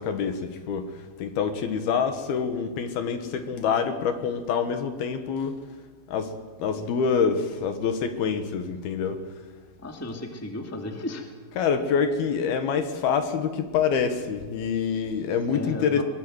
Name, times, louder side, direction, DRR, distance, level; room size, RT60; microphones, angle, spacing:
voice 1, 0.0-5.6 6.1-6.3 6.6-9.2 11.5-16.0, left 6 dB, 70° left, 8 dB, 3.2 m, -26 dB
voice 2, 9.8-11.2 15.5-16.0, left 1 dB, 5° left, 3 dB, 1.6 m, -34 dB
23.0 x 21.5 x 8.0 m, 1.4 s
omnidirectional pair, 4.8 m